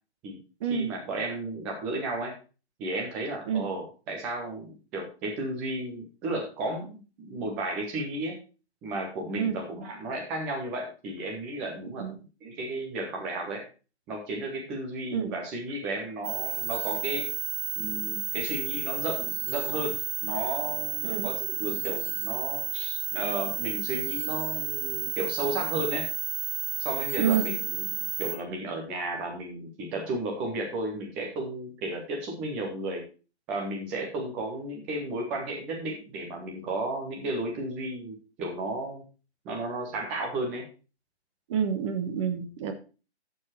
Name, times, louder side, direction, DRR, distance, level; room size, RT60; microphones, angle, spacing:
voice 1, 0.7-2.3 2.8-8.4 8.8-12.1 12.4-13.6 14.1-17.3 17.8-20.0 20.2-26.0 26.8-27.8 28.2-33.1 33.5-39.0 39.4-40.6, right 2 dB, 5° right, 1 dB, 0.4 m, -33 dB
sound 1, 16.2-28.4, right 10 dB, 45° right, 1.8 m, -32 dB
voice 2, 27.2-27.5 41.5-42.7, right 8 dB, 25° right, 6 dB, 1.2 m, -28 dB
9.4 x 6.8 x 4.3 m, 0.33 s
figure-of-eight pair, 135°, 33 cm